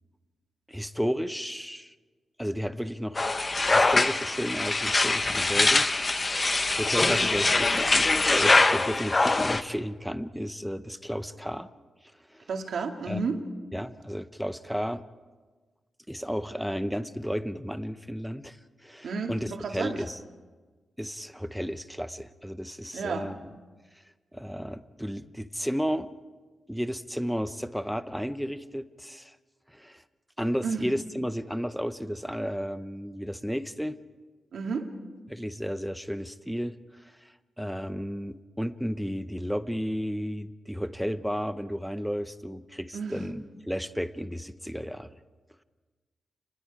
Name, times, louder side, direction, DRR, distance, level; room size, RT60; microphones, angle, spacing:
voice 1, 0.7-1.9 2.4-3.3 3.7-5.9 6.2-6.5 6.8-11.7 12.3-12.5 13.1-13.2 13.7-15.0 16.1-18.6 18.8-20.2 21.0-23.5 24.3-26.2 26.7-29.4 29.7-30.0 30.4-34.0 35.3-45.1, equal, ahead, 11 dB, 0.8 m, -33 dB
sound 1, 3.1-9.6, left 3 dB, 30° left, 0.9 m, -23 dB
voice 2, 12.5-13.4 19.0-20.0 22.9-23.3 30.6-30.9 34.5-34.9 42.9-43.2, right 4 dB, 75° right, 3 dB, 2.2 m, -32 dB
29.0 x 21.0 x 4.9 m, 1.4 s
cardioid pair, 95°, 0 cm